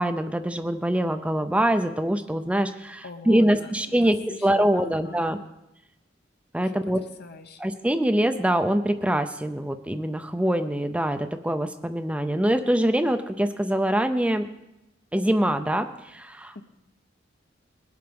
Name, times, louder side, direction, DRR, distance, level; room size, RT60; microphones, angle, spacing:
voice 1, 0.0-5.4 6.5-7.0 7.6-14.5 15.1-16.6, right 1 dB, 5° right, 8 dB, 0.5 m, -24 dB
voice 2, 3.0-5.5 6.6-7.6 16.5-16.6, left 3 dB, 55° left, 7 dB, 0.9 m, -43 dB
20.0 x 7.7 x 5.2 m, 0.91 s
head